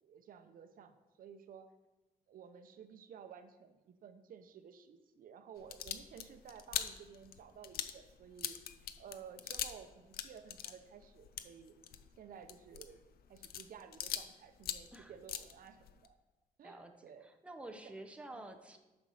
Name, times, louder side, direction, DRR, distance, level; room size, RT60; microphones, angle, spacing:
voice 1, 0.0-1.7 2.3-8.6 9.0-11.7 12.2-13.0 13.3-16.2 16.6-17.3 17.7-17.9 18.3-18.4, right 7 dB, 65° right, 9 dB, 0.7 m, -54 dB
sound 1, 5.6-9.9 10.1-14.3 14.6-16.1, left 10 dB, 80° left, 0.5 m, -42 dB
voice 2, 16.6-18.8, right 1 dB, 5° right, 4 dB, 0.7 m, -50 dB
7.0 x 5.3 x 6.3 m, 1.1 s
wide cardioid pair, 165°, 15 cm